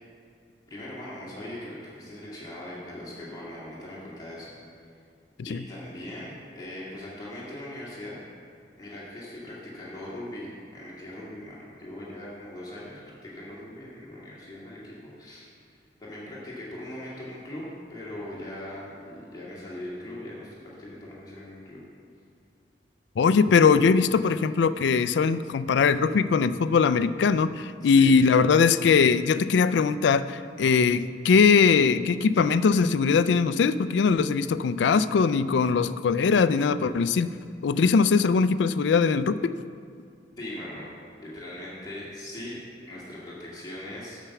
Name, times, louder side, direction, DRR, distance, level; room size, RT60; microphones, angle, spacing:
voice 1, 0.7-4.6 5.5-8.2 8.8-17.6 17.9-21.8 27.8-28.3 40.4-40.9 41.2-42.6 42.9-44.2, left 1 dB, 20° left, -7 dB, 2.0 m, -40 dB
voice 2, 23.2-37.3 37.6-39.5, left 5 dB, 80° left, 14 dB, 0.4 m, -21 dB
8.8 x 5.9 x 7.0 m, 2.4 s
head